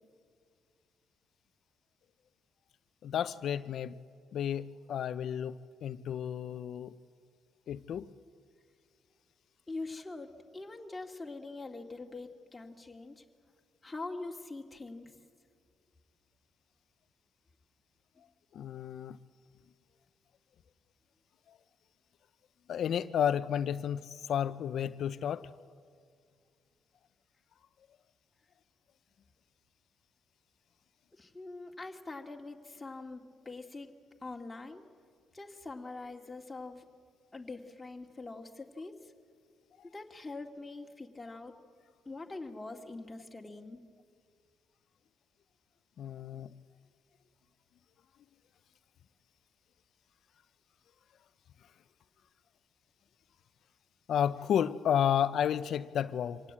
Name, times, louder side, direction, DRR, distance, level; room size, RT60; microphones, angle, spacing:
voice 1, 3.0-4.0 4.3-7.0 7.7-8.1 18.5-19.2 21.5-21.6 22.7-25.5 46.0-46.5 54.1-56.4, left 9 dB, 65° left, 0.6 m, -32 dB
voice 2, 9.7-13.2 13.8-15.1 31.1-34.0 34.2-34.9 35.3-36.8 37.3-39.1 39.8-41.5 42.1-43.8, left 3 dB, 15° left, 2.3 m, -43 dB
26.0 x 17.5 x 8.6 m
cardioid pair, 90°, 0 cm